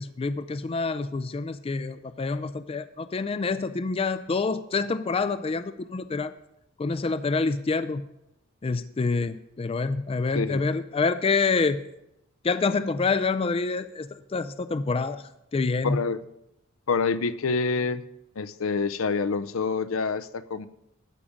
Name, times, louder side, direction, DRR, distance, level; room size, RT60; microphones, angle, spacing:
voice 1, 0.0-6.3 6.8-8.0 8.6-11.8 12.4-16.0, left 4 dB, 25° left, 13 dB, 0.4 m, -27 dB
voice 2, 15.8-16.2 16.9-18.0 18.4-20.7, left 4 dB, 70° left, 14 dB, 0.6 m, -27 dB
12.5 x 5.1 x 8.5 m, 0.83 s
head